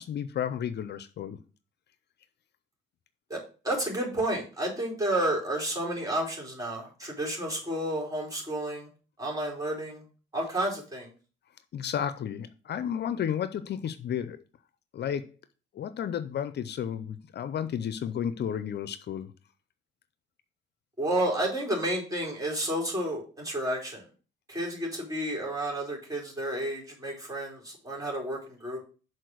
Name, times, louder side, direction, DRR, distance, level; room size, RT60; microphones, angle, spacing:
voice 1, 0.0-1.4 11.7-14.4 14.9-15.3 15.7-19.3, left 9 dB, 60° left, 0.6 m, -32 dB
voice 2, 3.6-8.9 9.2-10.0 10.3-11.1 21.0-24.0 24.5-28.8, right 1 dB, 20° right, 4.2 m, -31 dB
6.6 x 4.3 x 6.4 m
cardioid pair, 90°, 20 cm